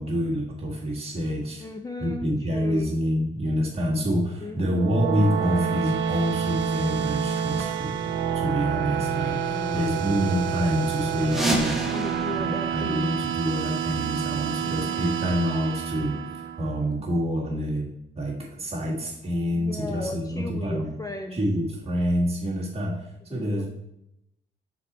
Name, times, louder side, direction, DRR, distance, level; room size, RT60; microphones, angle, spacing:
voice 1, 0.0-1.7 2.0-7.9 8.3-11.8 12.3-16.2 16.6-20.9 21.3-23.7, equal, 30° right, -4 dB, 2.3 m, -27 dB
voice 2, 1.6-3.0 4.4-4.9 9.5-10.1 11.8-13.2 14.6-15.1 19.5-21.4 23.3-23.7, left 2 dB, 20° left, 5 dB, 0.5 m, -36 dB
sound 1, 4.5-16.9, right 7 dB, 70° right, 0.5 m, -28 dB
sound 2, 11.2-13.9, right 1 dB, ahead, 1.2 m, -30 dB
5.8 x 4.3 x 4.3 m, 0.82 s
cardioid pair, 90°, 20 cm